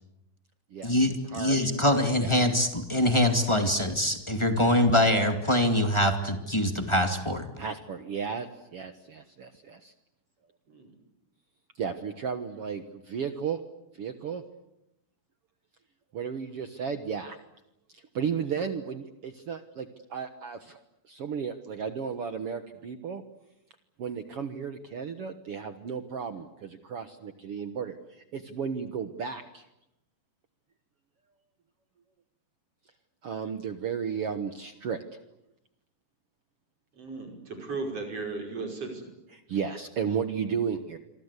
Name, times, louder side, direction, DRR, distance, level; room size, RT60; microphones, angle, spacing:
voice 1, 0.8-7.5, left 1 dB, 15° left, 6 dB, 1.2 m, -24 dB
voice 2, 1.9-2.4 7.6-9.9 11.8-13.6 13.9-14.4 16.1-17.4 17.9-20.8 21.1-23.2 24.0-29.6 33.2-35.0 39.3-41.0, right 6 dB, 60° right, 9 dB, 1.5 m, -34 dB
voice 3, 36.9-39.1, right 3 dB, 40° right, 3 dB, 6.3 m, -36 dB
27.5 x 24.5 x 8.2 m, 0.86 s
omnidirectional pair, 4.2 m